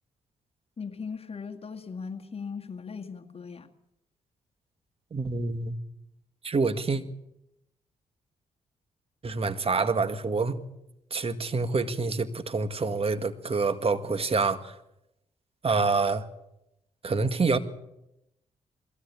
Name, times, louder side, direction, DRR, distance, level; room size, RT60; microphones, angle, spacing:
voice 1, 0.8-3.7, left 5 dB, 40° left, 6 dB, 2.0 m, -38 dB
voice 2, 5.1-5.8 6.4-7.0 9.2-10.6 11.1-14.7 15.6-16.2 17.0-17.6, right 4 dB, 40° right, 10 dB, 1.9 m, -27 dB
22.0 x 16.5 x 8.6 m, 0.86 s
supercardioid pair, 55°, 15 cm